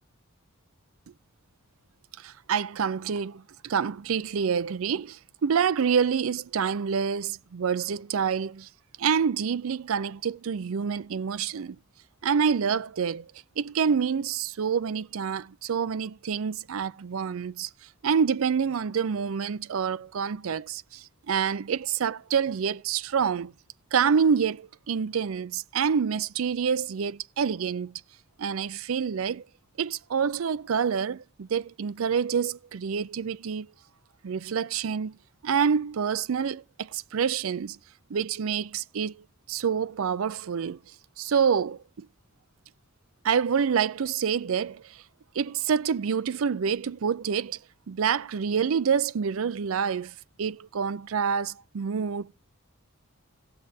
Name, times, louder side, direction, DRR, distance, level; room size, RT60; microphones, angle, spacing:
voice 1, 2.2-8.7 9.0-11.8 12.2-13.3 13.6-17.7 18.0-23.5 23.9-27.9 28.4-29.4 29.8-33.7 34.2-35.2 35.4-37.8 38.1-39.1 39.5-40.8 41.2-42.1 43.2-45.0 45.3-47.6 47.9-52.3, right 6 dB, 70° right, 0.4 m, -27 dB
18.0 x 7.6 x 2.7 m
head